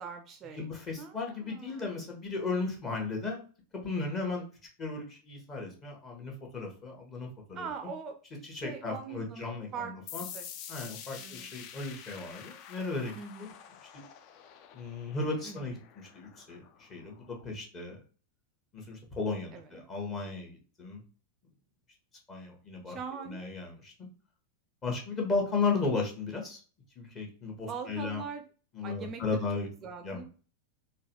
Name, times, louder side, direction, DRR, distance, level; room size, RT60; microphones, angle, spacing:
voice 1, 0.0-0.7 1.0-2.0 7.5-10.5 11.1-11.5 13.2-13.6 15.4-15.7 19.5-19.8 22.9-23.5 27.7-28.4 28.8-29.4 29.8-30.2, right 6 dB, 30° right, 6 dB, 0.4 m, -42 dB
voice 2, 0.6-3.4 3.7-4.5 4.8-7.7 8.5-10.2 10.7-13.5 13.9-14.0 14.7-15.8 16.1-18.0 18.7-21.0 22.3-23.0 23.3-23.9 24.8-26.6 27.0-28.2 28.7-29.7 30.0-30.3, left 3 dB, 25° left, 0 dB, 1.1 m, -35 dB
sound 1, 10.1-17.4, left 9 dB, 40° left, 0.4 m, -48 dB
3.8 x 2.2 x 2.7 m, 0.38 s
figure-of-eight pair, 90°, 0 cm